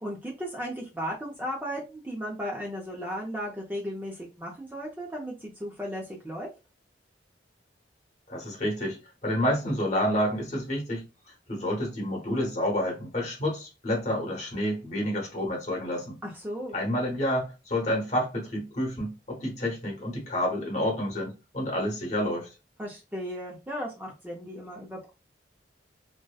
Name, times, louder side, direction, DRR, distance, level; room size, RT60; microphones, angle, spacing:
voice 1, 0.0-6.5 16.2-16.8 22.8-25.1, equal, 10° right, 0.4 m, -35 dB
voice 2, 8.3-9.0 9.2-11.0 11.5-16.2 16.7-22.5, equal, 40° left, 1.0 m, -29 dB
2.7 x 2.1 x 2.2 m
head